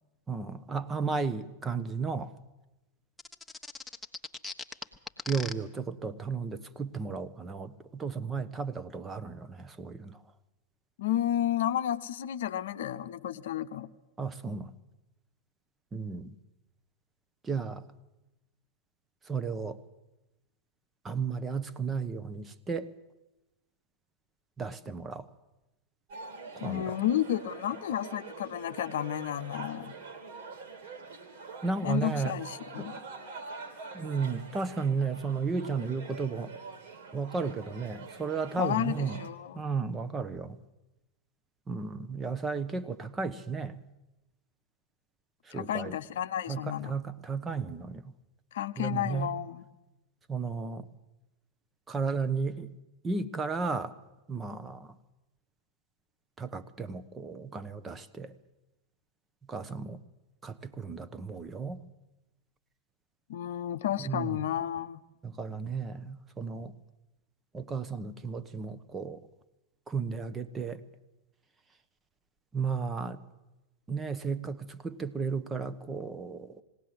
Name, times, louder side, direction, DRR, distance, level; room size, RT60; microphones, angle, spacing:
voice 1, 0.3-2.3 5.3-10.2 14.2-14.7 15.9-16.3 17.4-17.8 19.3-19.8 21.0-22.9 24.6-25.3 26.6-27.0 31.6-32.3 32.8-32.9 33.9-36.5 37.1-39.2 39.5-40.6 41.7-43.8 45.5-46.0 46.5-48.0 48.8-49.3 50.3-50.9 51.9-52.7 53.0-53.9 54.3-54.9 56.4-58.3 59.5-60.0 60.4-61.8 64.0-64.4 65.2-66.7 67.5-69.2 69.9-70.8 72.5-73.2 73.9-76.6, right 5 dB, 15° right, 12 dB, 1.0 m, -34 dB
sound 1, 3.2-5.5, left 3 dB, 5° left, 1.4 m, -39 dB
voice 2, 11.0-13.9 26.6-29.9 31.8-33.0 38.6-39.6 45.5-46.9 48.5-49.7 63.3-65.0, left 11 dB, 60° left, 10 dB, 0.8 m, -32 dB
sound 2, 26.1-39.3, right 4 dB, 55° right, 3.0 m, -45 dB
20.5 x 17.5 x 7.9 m, 1.0 s
figure-of-eight pair, 90°, 0 cm